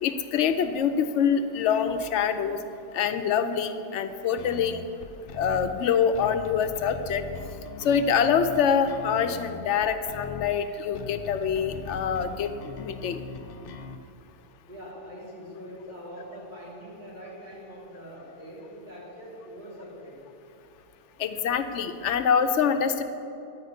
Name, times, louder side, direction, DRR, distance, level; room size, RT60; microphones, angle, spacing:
voice 1, 0.0-2.6 2.9-4.8 5.3-7.2 7.8-13.2 21.2-23.0, left 7 dB, 85° left, 9 dB, 0.9 m, -25 dB
sound 1, 4.4-14.0, left 5 dB, 60° left, 0.7 m, -41 dB
voice 2, 14.7-20.2, equal, 40° right, -7 dB, 3.3 m, -43 dB
11.0 x 5.4 x 8.1 m, 2.8 s
omnidirectional pair, 1.2 m